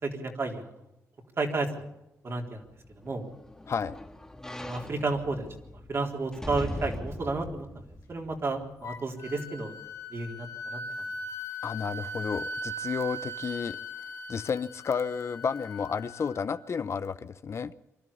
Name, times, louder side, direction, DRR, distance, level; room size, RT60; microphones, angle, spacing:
voice 1, 0.0-0.7 1.4-1.7 2.2-2.6 3.0-3.3 4.7-7.7 8.1-9.7 10.1-10.8, right 3 dB, 50° right, 2 dB, 3.8 m, -32 dB
sound 1, 2.7-9.0 9.5-9.6, left 1 dB, 10° left, 1.9 m, -41 dB
Wind instrument woodwind instrument, 8.8-16.6, equal, 85° left, 3.8 m, -39 dB
voice 2, 11.6-13.8 14.3-17.7, left 6 dB, 55° left, 14 dB, 0.8 m, -32 dB
24.5 x 12.5 x 8.5 m, 0.88 s
cardioid pair, 70°, 6 cm